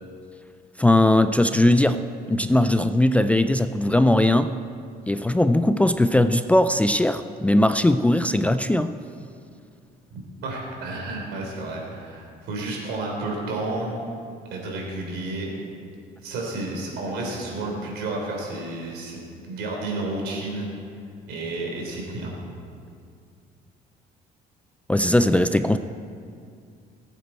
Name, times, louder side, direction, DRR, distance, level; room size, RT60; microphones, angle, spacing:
voice 1, 0.8-2.0 2.3-4.5 5.1-8.9 24.9-25.8, left 1 dB, 10° left, 10 dB, 0.4 m, -19 dB
voice 2, 10.1-14.1 14.5-15.5 16.2-20.7 21.3-22.4, right 2 dB, 80° right, -1 dB, 3.7 m, -31 dB
20.5 x 8.4 x 4.4 m, 2.3 s
cardioid pair, 110°, 17 cm